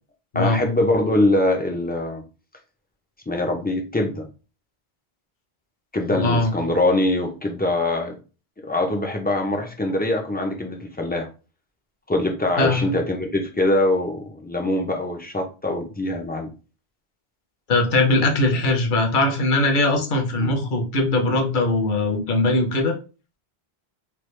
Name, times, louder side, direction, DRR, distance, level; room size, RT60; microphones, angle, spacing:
voice 1, 0.3-2.2 3.3-4.3 5.9-8.1 8.6-11.3 12.1-16.5 20.4-20.5, left 1 dB, 15° left, 0.3 m, -23 dB
voice 2, 6.1-6.5 12.6-12.9 17.7-23.0, left 2 dB, 55° left, 0.9 m, -20 dB
3.3 x 2.3 x 3.1 m
omnidirectional pair, 1.0 m